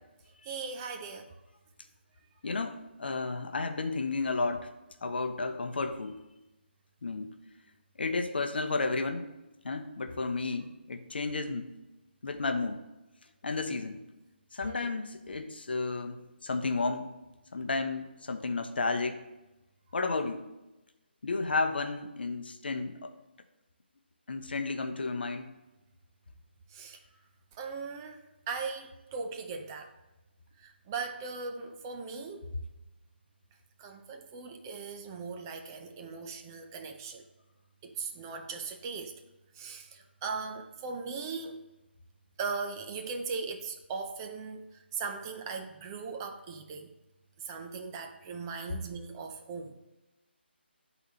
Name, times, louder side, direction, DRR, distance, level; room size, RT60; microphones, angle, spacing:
voice 1, 0.4-1.3 14.6-14.9 26.7-27.0 27.6-29.9 30.6-32.5 33.8-37.2 37.8-39.2 39.5-41.6 42.4-44.6 44.9-46.9 47.4-49.9, right 4 dB, 20° right, 4 dB, 0.5 m, -39 dB
voice 2, 2.4-4.7 5.0-6.2 7.0-7.3 8.0-9.3 9.6-11.7 12.2-12.8 13.4-14.0 14.5-17.1 17.5-19.2 19.9-20.5 21.2-23.1 24.3-25.5, left 3 dB, 60° left, 7 dB, 0.7 m, -32 dB
10.0 x 4.0 x 3.0 m, 0.99 s
figure-of-eight pair, 150°, 6 cm